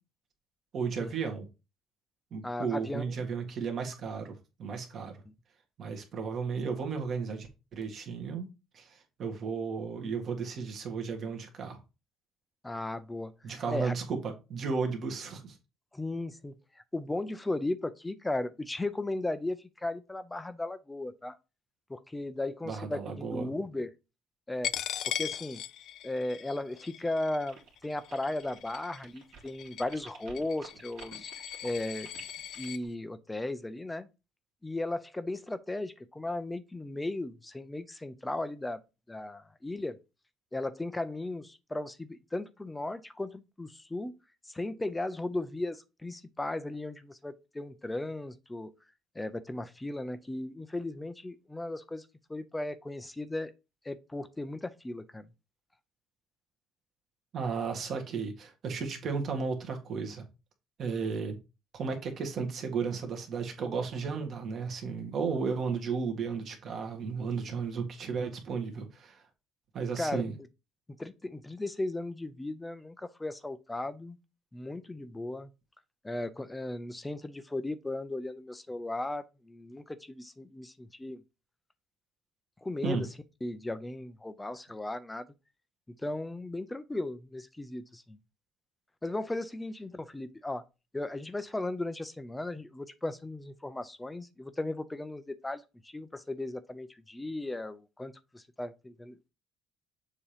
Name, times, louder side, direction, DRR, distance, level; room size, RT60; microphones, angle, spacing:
voice 1, 0.7-1.4 2.3-4.3 4.6-5.1 5.8-8.5 8.7-11.8 13.4-15.6 22.6-23.5 57.3-60.2 60.8-61.4 61.7-69.2 69.7-70.3 82.8-83.0, right 5 dB, 40° right, 1.7 m, -34 dB
voice 2, 2.4-3.0 12.6-13.3 13.7-13.9 15.9-16.6 16.9-21.4 21.9-23.9 24.5-24.7 25.2-25.6 26.0-31.3 31.6-32.1 32.6-34.1 34.6-38.8 39.1-40.0 40.5-44.2 44.5-48.7 49.1-53.5 53.8-55.3 70.0-70.2 71.0-74.2 74.5-75.5 76.0-81.2 82.6-83.1 83.4-85.3 85.9-88.2 89.0-90.6 90.9-99.3, left 2 dB, 10° left, 0.5 m, -36 dB
Coin (dropping), 24.6-32.8, left 11 dB, 55° left, 0.3 m, -39 dB
sound 1, 27.5-32.9, right 5 dB, 70° right, 2.2 m, -52 dB
7.1 x 2.9 x 5.0 m
cardioid pair, 135°, 0 cm